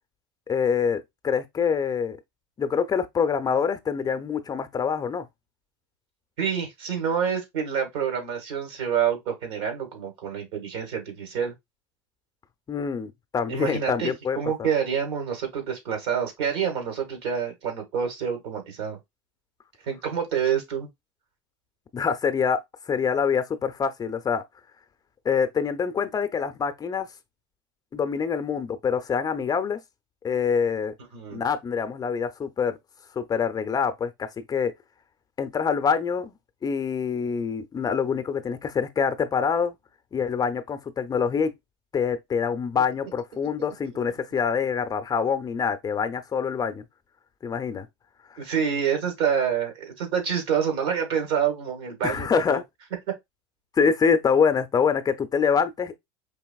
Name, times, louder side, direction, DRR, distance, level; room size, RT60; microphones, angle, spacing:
voice 1, 0.5-2.2 2.6-5.3 12.7-14.7 21.9-22.6 22.9-24.4 25.2-27.1 27.9-29.8 30.2-30.9 31.3-32.8 33.2-34.7 35.4-36.4 36.6-39.8 40.1-41.5 41.9-46.8 47.4-47.9 48.3-48.4 52.0-52.6 53.7-56.0, left 6 dB, 25° left, 0.6 m, -25 dB
voice 2, 6.4-11.5 13.5-19.0 19.8-20.9 31.1-31.4 48.4-52.6, right 7 dB, 75° right, 1.9 m, -27 dB
4.7 x 2.9 x 2.3 m
hypercardioid pair, 95°, 14 cm